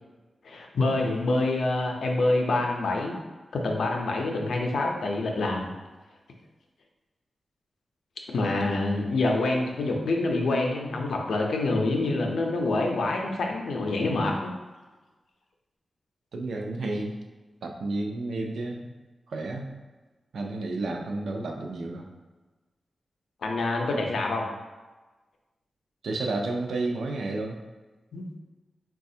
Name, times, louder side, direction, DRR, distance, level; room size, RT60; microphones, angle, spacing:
voice 1, 0.4-3.2 3.5-5.7 8.3-14.5 23.4-24.5 28.1-28.3, left 2 dB, 85° left, 1 dB, 0.5 m, -26 dB
voice 2, 16.3-17.2 17.6-18.9 19.3-19.7 20.3-22.1 26.0-27.6, right 2 dB, 80° right, 2 dB, 0.4 m, -31 dB
4.0 x 2.3 x 2.7 m, 1.2 s
wide cardioid pair, 130°, 0 cm